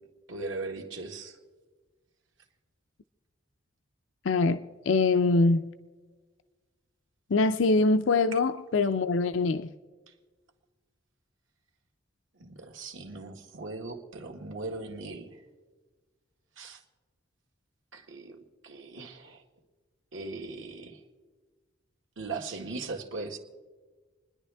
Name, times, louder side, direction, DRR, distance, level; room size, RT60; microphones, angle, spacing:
voice 1, 0.3-1.3 12.4-15.3 16.6-16.8 17.9-18.4 18.6-19.4 20.1-21.0 22.2-23.4, right 3 dB, 75° right, 1.7 m, -39 dB
voice 2, 4.2-5.7 7.3-9.7, left 3 dB, 75° left, 0.5 m, -24 dB
28.0 x 10.5 x 3.4 m
head